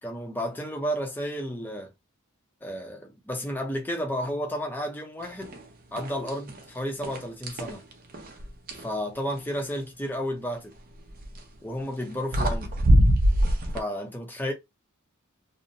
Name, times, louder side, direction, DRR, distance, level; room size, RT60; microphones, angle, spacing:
voice 1, 0.0-1.9 2.6-5.5 5.9-7.8 8.8-10.7 11.6-12.8 13.7-14.5, equal, 10° left, 0.6 m, -32 dB
sound 1, 5.4-5.6 6.0-6.6 7.0-8.9 11.1-11.4 12.0-12.1 12.3-13.8, equal, 40° right, 0.5 m, -23 dB
2.6 x 2.1 x 2.6 m
head